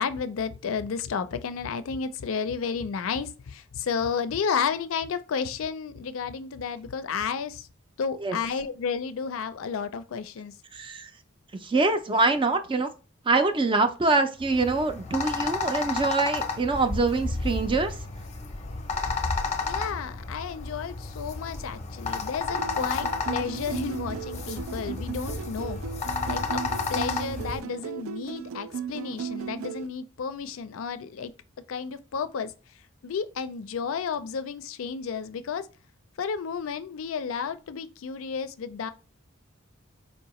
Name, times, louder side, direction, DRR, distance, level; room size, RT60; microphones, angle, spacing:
voice 1, 0.0-7.7 8.0-10.5 19.7-25.8 26.3-26.6 26.9-31.3 31.7-32.5 33.0-35.6 36.2-38.9, left 6 dB, 85° left, 0.4 m, -32 dB
voice 2, 10.7-11.1 11.6-12.9 13.3-17.9, right 3 dB, 25° right, 0.4 m, -24 dB
sound 1, 14.4-27.6, left 4 dB, 35° left, 0.6 m, -32 dB
sound 2, 22.5-29.9, right 8 dB, 90° right, 0.4 m, -36 dB
4.4 x 2.7 x 2.9 m
head